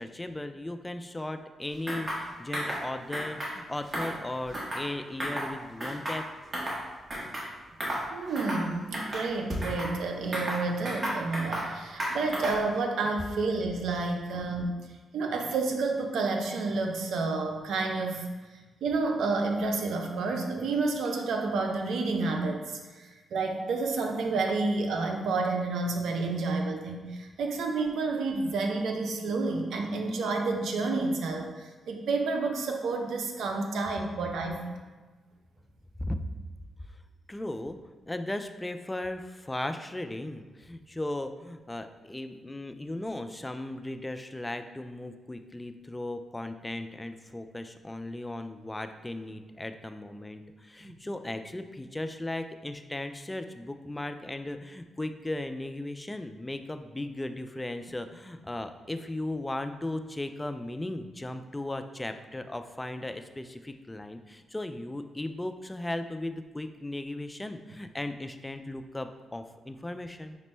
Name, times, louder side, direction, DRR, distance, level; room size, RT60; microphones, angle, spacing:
voice 1, 0.0-6.3 6.6-6.8 36.0-36.2 37.3-37.8 38.1-70.4, left 1 dB, 15° left, 8 dB, 0.3 m, -37 dB
sound 1, 1.9-2.2 2.5-2.8 3.1-3.5 3.9-4.9 5.2-5.5 5.8-6.8 7.1-7.5 7.8-8.1 8.4-8.7 8.9-9.9 10.3-11.7 12.0-12.7, equal, 35° right, 1.1 m, -33 dB
voice 2, 8.1-14.7 15.1-18.3 18.8-34.7, right 3 dB, 75° right, 3 dB, 0.5 m, -30 dB
5.1 x 2.1 x 3.1 m, 1.3 s
supercardioid pair, 50°, 0 cm